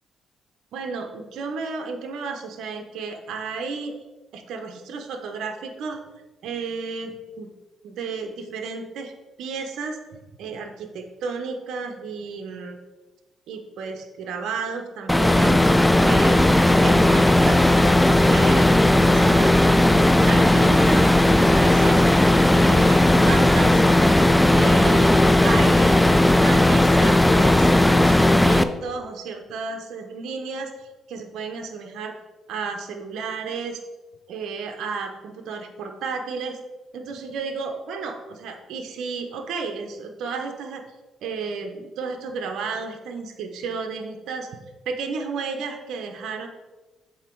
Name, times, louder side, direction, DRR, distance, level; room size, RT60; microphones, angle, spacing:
voice 1, 0.7-3.9 4.3-6.0 6.4-7.5 7.8-9.1 9.4-12.8 13.5-15.6 16.0-16.4 16.7-17.7 18.2-19.6 20.2-21.1 21.4-22.1 22.5-23.9 24.5-26.0 26.4-32.2 32.5-33.8 34.3-36.6 36.9-40.8 41.2-44.5 44.9-46.5, right 5 dB, 80° right, 5 dB, 0.8 m, -32 dB
sound 1, 15.1-28.6, left 1 dB, 5° left, 0.4 m, -16 dB
7.2 x 3.9 x 4.5 m, 1.2 s
cardioid pair, 90°, 0 cm